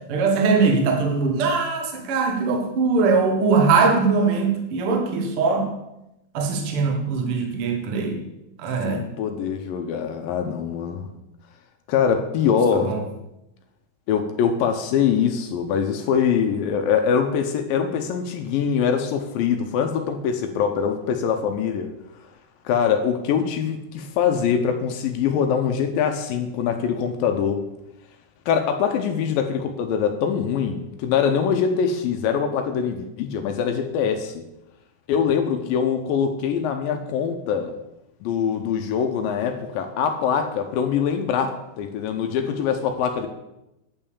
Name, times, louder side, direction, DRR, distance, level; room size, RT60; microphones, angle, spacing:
voice 1, 0.1-5.7 6.3-8.2 8.6-9.0 12.8-13.0, right 4 dB, 80° right, 2 dB, 1.2 m, -21 dB
voice 2, 8.8-11.1 11.9-12.9 14.1-21.9 22.7-27.6 28.5-34.4 35.1-37.7 38.2-43.3, left 7 dB, 80° left, 6 dB, 2.1 m, -23 dB
9.2 x 5.6 x 7.0 m, 0.90 s
omnidirectional pair, 4.8 m